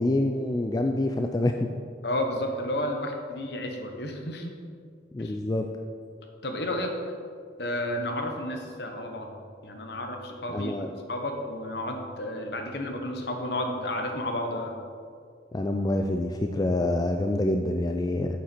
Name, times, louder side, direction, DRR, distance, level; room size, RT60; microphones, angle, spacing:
voice 1, 0.0-1.7 5.1-5.7 10.5-10.9 15.5-18.3, left 1 dB, 20° left, 4 dB, 0.3 m, -26 dB
voice 2, 2.0-4.5 5.2-5.4 6.4-6.9 7.6-9.3 9.6-10.7 11.1-14.7, left 1 dB, 60° left, 3 dB, 1.1 m, -31 dB
9.2 x 7.4 x 4.4 m, 2.2 s
head